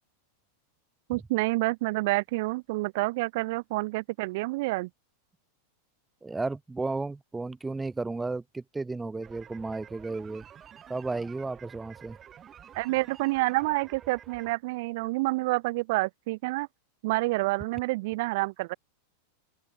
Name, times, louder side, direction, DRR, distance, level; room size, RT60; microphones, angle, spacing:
voice 1, 1.1-4.9 12.7-16.7 17.0-18.7, right 22 dB, 50° right, 1.8 m, -28 dB
voice 2, 6.2-10.4 10.9-12.2, right 3 dB, 10° right, 2.3 m, -33 dB
sound 1, 9.2-14.5, right 9 dB, 25° right, 6.1 m, -50 dB
open air
figure-of-eight pair, 90°, 0 cm